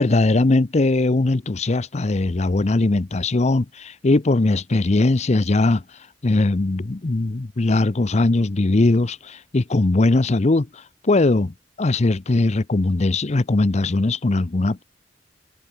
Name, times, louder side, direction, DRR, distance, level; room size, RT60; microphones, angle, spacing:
voice 1, 0.0-5.8 6.2-14.8, left 2 dB, 40° left, 0.7 m, -20 dB
head